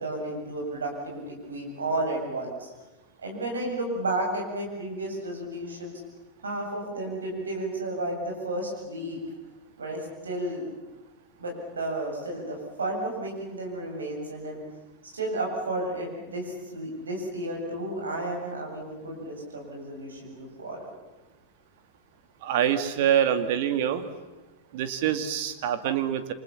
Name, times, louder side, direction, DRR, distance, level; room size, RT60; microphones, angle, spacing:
voice 1, 0.0-2.7 3.2-6.0 6.4-9.2 9.8-10.7 11.4-14.6 15.1-20.9, right 1 dB, 70° right, 1 dB, 7.8 m, -32 dB
voice 2, 22.4-24.1 24.7-26.3, right 9 dB, 50° right, 10 dB, 2.3 m, -25 dB
29.0 x 26.0 x 7.2 m, 1.2 s
figure-of-eight pair, 90°, 0 cm